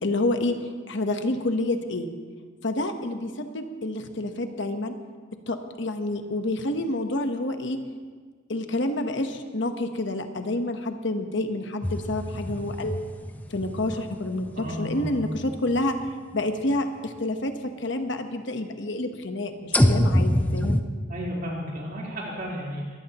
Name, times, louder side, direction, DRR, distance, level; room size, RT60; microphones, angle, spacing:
voice 1, 0.0-0.6 0.9-2.1 2.6-4.9 5.5-7.8 8.5-13.1 13.5-16.0 16.3-20.8, left 2 dB, 65° left, 6 dB, 1.1 m, -28 dB
sound 1, 11.8-16.1 16.7-16.8 19.7-20.8, left 1 dB, 10° left, 0.7 m, -25 dB
voice 2, 14.5-15.1 21.1-23.0, equal, 50° right, -4 dB, 4.0 m, -33 dB
22.5 x 16.0 x 3.0 m, 1.5 s
head